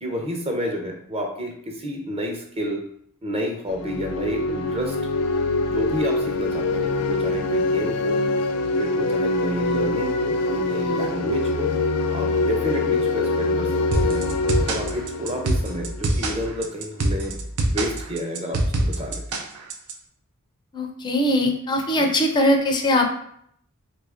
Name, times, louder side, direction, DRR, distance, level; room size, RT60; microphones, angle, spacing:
voice 1, 0.0-2.8 3.2-4.9 5.7-8.2 8.8-11.7 12.1-14.2 14.6-17.3 17.7-19.2 22.0-22.1, equal, 25° right, 1 dB, 0.6 m, -30 dB
sound 1, 3.7-16.4, left 2 dB, 90° left, 0.3 m, -24 dB
sound 2, 13.9-19.9, right 2 dB, 85° right, 0.5 m, -24 dB
voice 2, 20.7-23.2, left 1 dB, 20° left, 3 dB, 0.4 m, -21 dB
3.2 x 2.5 x 3.4 m, 0.68 s
head